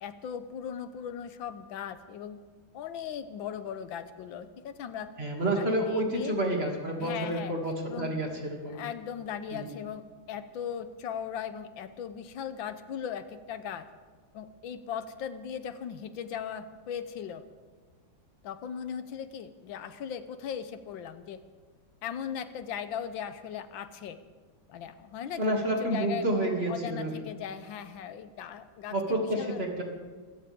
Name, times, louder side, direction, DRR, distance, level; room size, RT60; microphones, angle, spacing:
voice 1, 0.0-2.4 2.7-5.1 5.5-6.4 7.0-7.5 7.9-8.2 8.7-13.9 14.3-17.4 18.4-21.4 22.0-24.2 24.7-29.6, left 8 dB, 80° left, 11 dB, 1.6 m, -38 dB
voice 2, 5.2-8.8 9.5-9.7 25.4-27.1 28.9-29.8, right 1 dB, 30° right, 0 dB, 2.9 m, -29 dB
25.0 x 15.5 x 3.7 m, 1.4 s
omnidirectional pair, 2.1 m